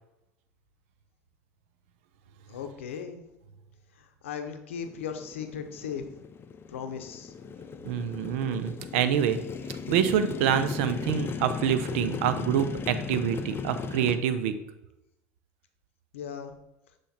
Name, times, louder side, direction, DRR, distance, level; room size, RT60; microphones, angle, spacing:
voice 1, 2.5-3.2 4.0-6.1 6.7-7.3 16.1-16.5, left 7 dB, 85° left, 7 dB, 0.7 m, -37 dB
Motorcycle, 4.8-14.2, left 5 dB, 35° left, 0.5 m, -37 dB
voice 2, 7.8-9.4 9.9-14.5, right 9 dB, 75° right, 11 dB, 0.6 m, -26 dB
7.6 x 3.2 x 4.2 m, 0.91 s
hypercardioid pair, 75°, 7 cm